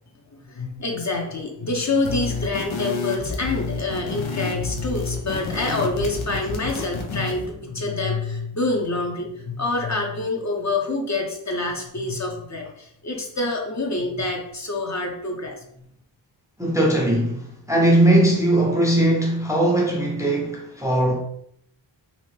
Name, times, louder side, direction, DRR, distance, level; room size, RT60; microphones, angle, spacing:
voice 1, 0.5-15.6, left 2 dB, 35° left, 0.7 m, -26 dB
sound 1, 2.0-7.5, left 4 dB, 85° left, 0.6 m, -30 dB
voice 2, 16.6-21.2, right 1 dB, 5° right, 0.5 m, -19 dB
2.8 x 2.1 x 3.1 m
cardioid pair, 55°, 46 cm